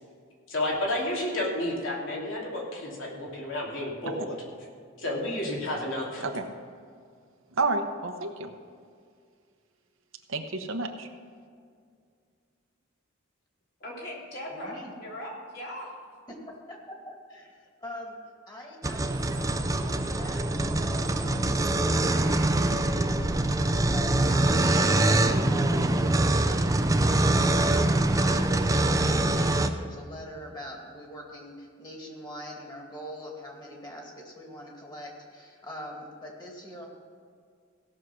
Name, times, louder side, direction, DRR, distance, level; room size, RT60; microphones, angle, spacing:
voice 1, 0.5-4.4 5.0-6.2, left 1 dB, 75° left, -3 dB, 2.8 m, -31 dB
voice 2, 7.5-8.5 10.3-11.1, right 3 dB, 75° right, 5 dB, 0.9 m, -30 dB
voice 3, 13.8-15.9, equal, 50° left, -4 dB, 3.5 m, -39 dB
voice 4, 14.5-14.9 16.3-18.2 18.5-36.8, left 1 dB, 20° left, -1 dB, 2.3 m, -43 dB
sound 1, 18.8-29.7, right 2 dB, 15° right, 0.5 m, -24 dB
16.5 x 6.4 x 6.1 m, 2.1 s
head